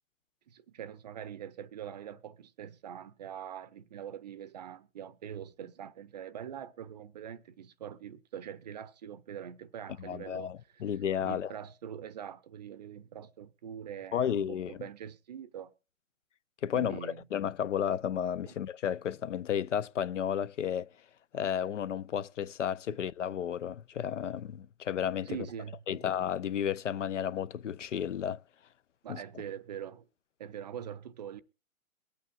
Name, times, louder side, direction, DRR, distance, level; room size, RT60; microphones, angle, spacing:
voice 1, 0.5-10.5 11.2-15.7 16.7-17.3 18.5-18.6 25.3-26.0 29.0-30.1 30.4-31.4, right 9 dB, 30° right, 0.6 m, -43 dB
voice 2, 10.0-11.5 14.1-14.8 16.6-20.9 21.3-25.3 25.9-28.4 29.1-29.2, left 9 dB, 60° left, 0.6 m, -32 dB
23.0 x 8.7 x 2.4 m
hypercardioid pair, 140°, 42 cm